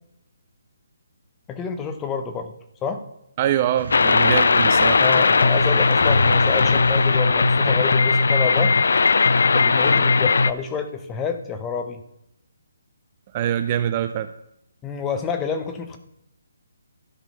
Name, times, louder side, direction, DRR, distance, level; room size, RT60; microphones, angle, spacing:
voice 1, 1.5-2.5 2.8-3.0 5.0-8.7 9.5-12.0 14.8-16.0, left 6 dB, 10° left, 7 dB, 0.7 m, -28 dB
voice 2, 3.4-5.0 13.3-14.3, right 11 dB, 20° right, 11 dB, 0.4 m, -24 dB
sound 1, 3.8-7.7, right 4 dB, 65° right, 2.2 m, -38 dB
sound 2, 3.9-10.5, left 4 dB, 70° left, 0.5 m, -18 dB
sound 3, 6.0-7.8, left 2 dB, 35° left, 1.2 m, -29 dB
12.5 x 5.1 x 6.7 m, 0.80 s
hypercardioid pair, 175°, 0 cm